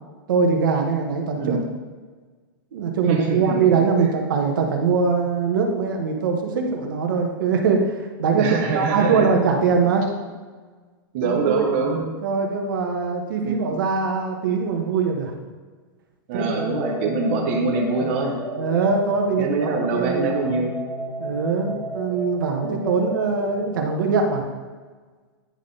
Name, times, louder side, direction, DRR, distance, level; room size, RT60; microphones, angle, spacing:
voice 1, 0.3-1.6 2.7-10.0 11.2-11.5 11.9-15.3 16.3-16.5 18.6-19.5 19.9-20.3 21.2-24.5, right 5 dB, 65° right, 2 dB, 1.2 m, -22 dB
voice 2, 3.1-3.6 4.0-4.1 8.3-9.3 11.1-12.0 12.4-12.5 13.4-13.6 16.3-18.4 19.4-20.7 22.6-22.9, right 4 dB, 30° right, -1 dB, 0.7 m, -24 dB
sound 1, 16.4-23.7, equal, 10° left, 1.1 m, -32 dB
9.8 x 3.9 x 3.8 m, 1.4 s
supercardioid pair, 175°, 12 cm